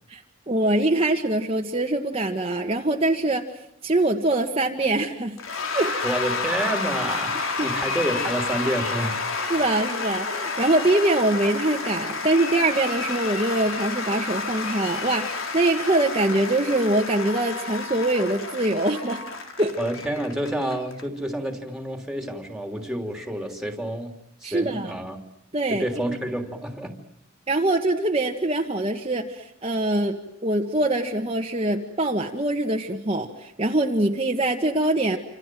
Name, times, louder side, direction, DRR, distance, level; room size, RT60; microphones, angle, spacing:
voice 1, 0.1-3.4 3.8-5.4 5.7-5.9 7.6-7.7 9.5-19.2 19.6-19.8 24.4-24.9 25.5-26.2 27.5-30.2 30.4-35.2, right 2 dB, 30° right, 1 dB, 1.7 m, -23 dB
Cheering / Applause / Crowd, 5.4-21.0, left 4 dB, 80° left, 3.5 m, -30 dB
voice 2, 6.0-9.2 19.8-24.1 24.4-25.2 25.7-27.0, right 1 dB, 5° right, 4 dB, 3.2 m, -29 dB
28.0 x 27.0 x 7.7 m, 0.76 s
head